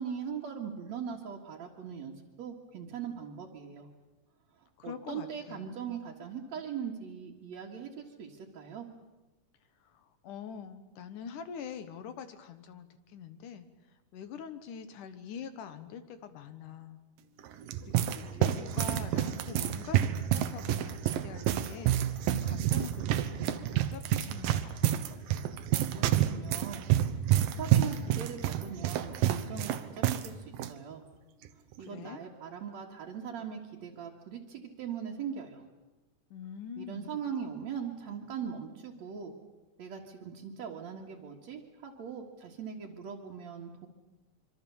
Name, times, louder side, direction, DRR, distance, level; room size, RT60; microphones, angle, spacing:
voice 1, 0.0-3.9 4.6-8.9 25.8-26.9 27.4-31.0 31.8-35.6 36.8-39.3 39.8-43.9, right 7 dB, 55° right, -3 dB, 2.9 m, -40 dB
voice 2, 4.8-5.6 9.8-13.7 14.1-17.0 17.8-25.0 31.8-32.2 36.3-37.2, left 7 dB, 70° left, 10 dB, 2.7 m, -44 dB
sound 1, 17.4-30.3 30.5-30.7 31.4-31.7, right 12 dB, 85° right, 2.7 m, -29 dB
25.5 x 25.0 x 7.1 m, 1.1 s
omnidirectional pair, 3.9 m